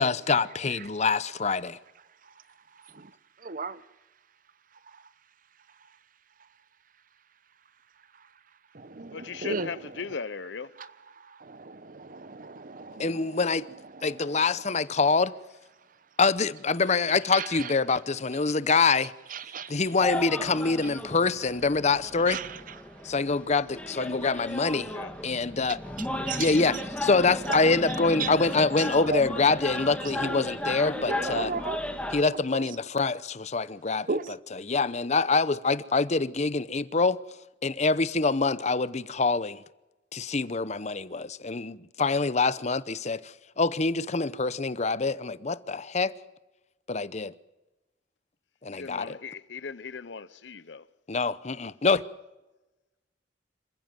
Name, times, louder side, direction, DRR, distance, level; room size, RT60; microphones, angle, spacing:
voice 1, 0.0-1.8 13.0-13.7 14.0-15.3 16.2-19.1 19.7-22.4 23.0-24.9 25.2-25.8 26.4-31.5 32.1-34.1 34.7-37.2 37.6-39.6 40.1-46.1 46.9-47.3 48.6-49.2 51.1-52.0, left 4 dB, 40° left, 0.8 m, -25 dB
voice 2, 2.2-3.9 4.7-5.1 5.7-6.0 6.4-6.5 8.1-8.3 8.7-10.2 10.8-14.8 15.9-16.0 17.3-18.0 18.3-18.6 19.3-19.8 20.8-20.9 22.3-23.1 25.3-25.4 25.7-26.8 27.9-28.3 28.8-29.2 30.0-32.7 34.0-34.4, right 4 dB, 45° right, 0.8 m, -38 dB
voice 3, 9.1-10.7 24.9-25.1 48.7-50.9, left 5 dB, 75° left, 0.8 m, -38 dB
sound 1, 20.0-32.2, left 1 dB, 5° left, 1.6 m, -35 dB
27.5 x 15.0 x 7.6 m
head